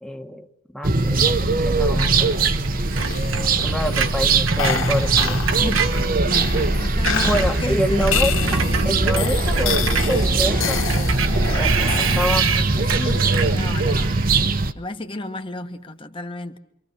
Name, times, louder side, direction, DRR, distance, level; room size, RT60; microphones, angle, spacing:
voice 1, 0.0-0.4 0.7-2.5 3.6-5.4 7.2-10.9 11.6-12.5, equal, 5° left, 4 dB, 1.3 m, -27 dB
sound 1, 0.8-14.7, right 3 dB, 45° right, 1.1 m, -21 dB
Screech, 2.0-6.7 6.9-14.4, right 7 dB, 85° right, 1.7 m, -29 dB
sound 2, 2.9-12.8, left 6 dB, 85° left, 2.5 m, -29 dB
voice 2, 5.6-8.8 12.5-14.2 14.7-16.6, left 1 dB, 25° left, 6 dB, 1.5 m, -33 dB
27.5 x 25.5 x 6.7 m, 0.78 s
head